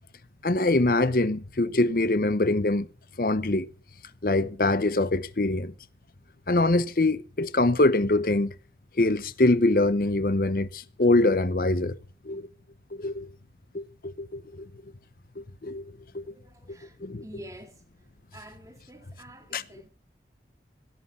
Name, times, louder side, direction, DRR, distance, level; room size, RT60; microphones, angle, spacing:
voice 1, 0.4-2.9 3.2-3.7 4.2-5.7 6.5-8.5 8.9-12.0 12.2-12.5 12.9-13.3 13.7-14.7 15.4-16.3 17.0-17.2 19.5-19.6, left 2 dB, 50° left, 0.8 m, -24 dB
voice 2, 16.2-17.8 18.3-19.9, right 1 dB, 20° right, 2.1 m, -48 dB
17.0 x 9.7 x 7.0 m
head